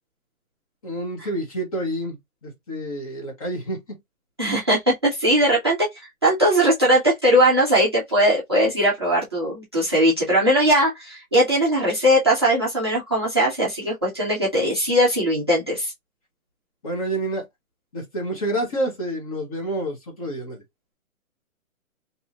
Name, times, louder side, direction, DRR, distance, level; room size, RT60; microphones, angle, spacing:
voice 1, 0.8-4.0 16.8-17.5 17.9-20.6, right 1 dB, 25° left, 0.8 m, -28 dB
voice 2, 4.4-15.9, equal, 20° right, 0.5 m, -20 dB
2.7 x 2.4 x 2.7 m
hypercardioid pair, 155°, 42 cm